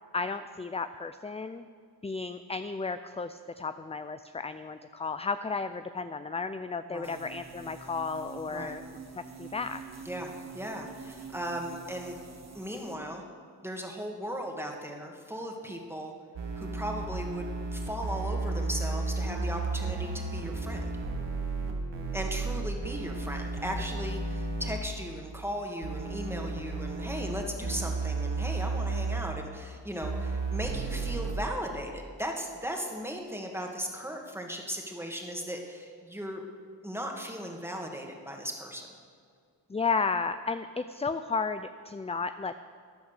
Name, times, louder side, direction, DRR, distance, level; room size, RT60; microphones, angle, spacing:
voice 1, 0.1-1.7 2.0-8.8 9.1-9.8 21.6-22.2 39.7-42.5, left 4 dB, 15° left, 11 dB, 0.4 m, -33 dB
sound 1, 7.0-12.9, right 5 dB, 40° right, 1.4 m, -46 dB
voice 2, 10.1-12.2 12.5-13.2 13.6-16.1 16.6-20.9 22.1-36.4 36.8-38.9, equal, 5° right, 1 dB, 2.1 m, -37 dB
sound 2, 16.4-24.8 25.8-29.2 30.0-31.3, right 3 dB, 80° right, 1.9 m, -33 dB
14.5 x 10.0 x 6.7 m, 2.1 s
cardioid pair, 60°, 42 cm